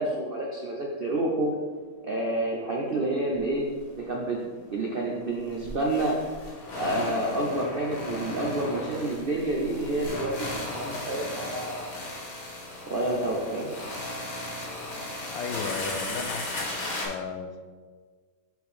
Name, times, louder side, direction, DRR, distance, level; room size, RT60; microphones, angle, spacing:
voice 1, 0.0-1.5 2.0-3.7 3.9-4.4 4.7-6.1 6.8-11.9 12.9-13.7, right 1 dB, 70° right, -2 dB, 0.5 m, -29 dB
sound 1, 3.3-3.5 3.8-3.9 5.4-17.1, left 1 dB, 55° left, 1.9 m, -36 dB
voice 2, 15.3-17.7, left 5 dB, 80° left, 7 dB, 1.3 m, -35 dB
5.3 x 4.5 x 4.9 m, 1.5 s
omnidirectional pair, 2.0 m